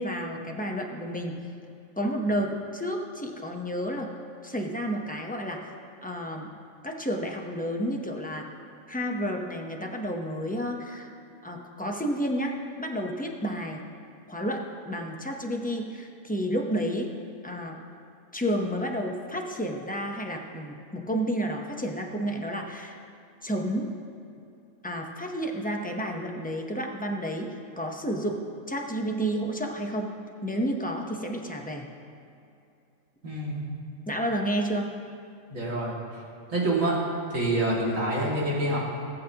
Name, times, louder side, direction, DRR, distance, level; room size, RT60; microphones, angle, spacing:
voice 1, 0.0-1.3 2.0-4.1 4.4-5.6 6.0-6.5 6.8-8.5 8.9-11.1 11.4-13.8 14.3-17.1 17.4-17.8 18.3-23.0 23.4-24.0 24.8-30.2 30.4-31.9 34.1-34.9, equal, 10° left, 1 dB, 0.7 m, -31 dB
voice 2, 33.2-33.6 35.5-35.9 36.5-37.0 37.3-38.8, right 1 dB, 75° right, -5 dB, 2.7 m, -26 dB
18.0 x 8.4 x 2.9 m, 2.6 s
omnidirectional pair, 1.4 m